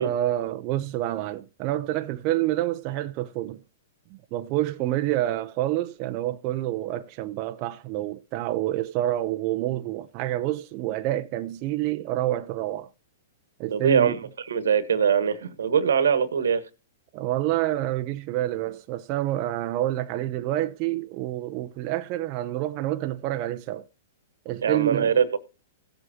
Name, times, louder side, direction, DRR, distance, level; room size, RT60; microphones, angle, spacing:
voice 1, 0.0-3.6 4.1-12.9 13.6-14.2 17.1-23.9 24.5-25.2, right 14 dB, 40° right, 0.6 m, -28 dB
voice 2, 13.7-16.6 24.6-25.4, right 7 dB, 85° right, 1.4 m, -22 dB
18.0 x 7.6 x 2.8 m
hypercardioid pair, 135°, 0 cm